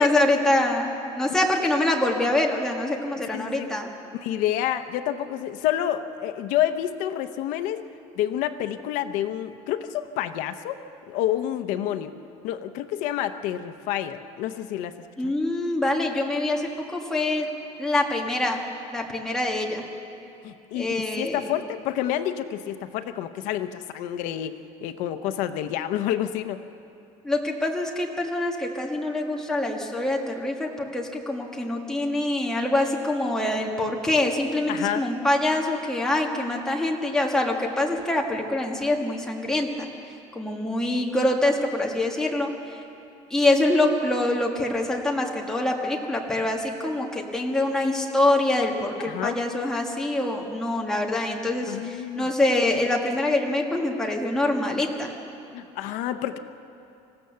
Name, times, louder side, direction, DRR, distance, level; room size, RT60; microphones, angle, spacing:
voice 1, 0.0-3.9 15.2-17.5 17.8-18.6 18.9-19.8 20.7-21.5 27.2-39.9 40.4-42.5 43.3-55.1, left 1 dB, 5° left, 0 dB, 1.6 m, -25 dB
voice 2, 3.3-3.7 4.1-7.8 8.2-10.8 11.1-12.1 12.4-15.0 15.2-15.3 20.4-24.5 24.8-26.6 34.7-35.0 49.1-49.4 51.7-52.3 55.5-56.4, left 11 dB, 80° left, 9 dB, 0.8 m, -28 dB
26.0 x 15.5 x 6.9 m, 2.7 s
cardioid pair, 170°, 13 cm